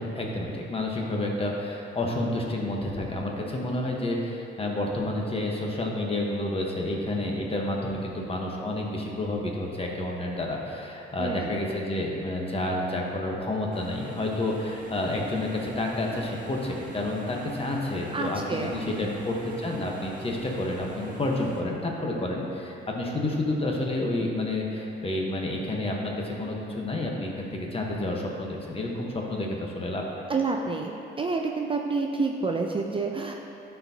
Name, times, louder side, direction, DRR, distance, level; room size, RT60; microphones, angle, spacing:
voice 1, 0.0-30.2, left 1 dB, 30° left, -1 dB, 1.1 m, -30 dB
voice 2, 11.2-11.5 18.1-19.1 30.3-33.4, right 4 dB, 25° right, 2 dB, 0.4 m, -29 dB
sound 1, 13.7-21.6, right 1 dB, 45° right, 1.1 m, -43 dB
11.5 x 4.5 x 2.8 m, 2.8 s
cardioid pair, 90°, 20 cm